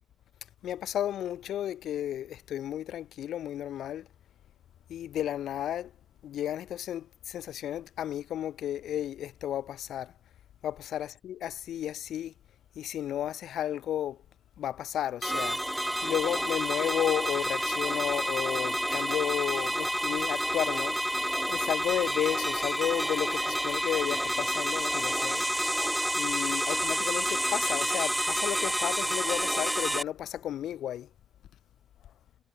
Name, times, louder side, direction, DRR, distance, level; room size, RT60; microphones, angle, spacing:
voice 1, 0.6-4.1 4.9-5.9 6.2-10.1 10.6-12.3 12.8-14.2 14.6-15.6 16.0-21.0 21.5-25.4 26.2-31.1, left 11 dB, 75° left, 5.3 m, -33 dB
sound 1, 15.2-30.0, equal, 5° right, 3.6 m, -29 dB
cardioid pair, 90°, 0 cm